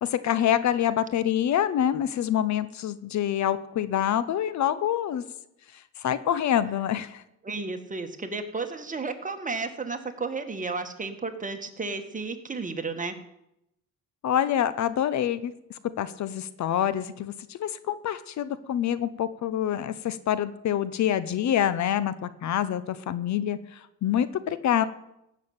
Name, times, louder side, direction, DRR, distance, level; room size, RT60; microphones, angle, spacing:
voice 1, 0.0-5.2 6.0-7.2 14.2-15.5 16.0-24.8, left 10 dB, 70° left, 15 dB, 0.9 m, -26 dB
voice 2, 7.4-13.2, right 4 dB, 25° right, 6 dB, 1.8 m, -33 dB
15.0 x 6.6 x 9.0 m, 0.82 s
cardioid pair, 90°, 30 cm